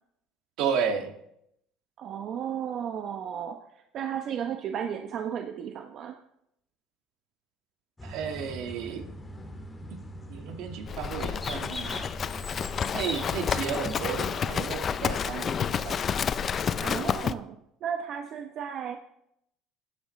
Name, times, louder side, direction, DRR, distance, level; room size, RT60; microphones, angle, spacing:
voice 1, 0.6-1.1 8.0-9.1 10.3-12.1 12.9-16.0, right 7 dB, 70° right, 5 dB, 1.7 m, -33 dB
voice 2, 2.0-6.2 16.8-19.0, right 8 dB, 50° right, 5 dB, 0.9 m, -34 dB
sound 1, 8.0-14.3, left 1 dB, 15° left, 2.1 m, -40 dB
Livestock farm animals working animals, 10.9-17.3, left 7 dB, 40° left, 0.5 m, -30 dB
16.5 x 11.5 x 3.2 m, 0.77 s
supercardioid pair, 110°, 0 cm